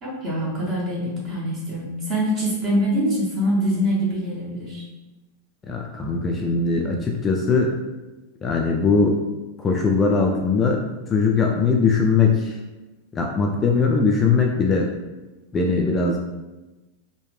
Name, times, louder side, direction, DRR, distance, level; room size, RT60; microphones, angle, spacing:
voice 1, 0.0-4.8, equal, 30° right, -6 dB, 1.3 m, -24 dB
voice 2, 5.7-7.7 8.4-9.2 9.6-10.8 11.1-12.5 13.2-14.9 15.5-16.2, left 4 dB, 20° left, 0 dB, 0.3 m, -20 dB
3.1 x 2.2 x 3.3 m, 1.1 s
figure-of-eight pair, 90°, 0 cm